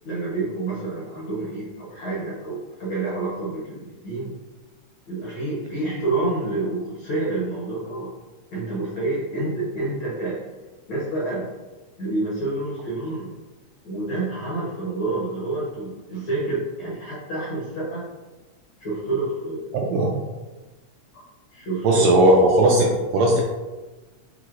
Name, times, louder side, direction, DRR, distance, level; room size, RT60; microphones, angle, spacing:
voice 1, 0.0-4.3 5.1-8.1 8.5-10.4 10.9-11.5 12.0-13.3 13.8-18.1 18.8-20.1 21.1-21.2 21.5-22.2, right 2 dB, 60° left, -7 dB, 1.3 m, -28 dB
voice 2, 21.8-23.4, right 1 dB, 80° right, 0 dB, 1.6 m, -17 dB
4.9 x 3.8 x 2.5 m, 1.2 s
omnidirectional pair, 3.3 m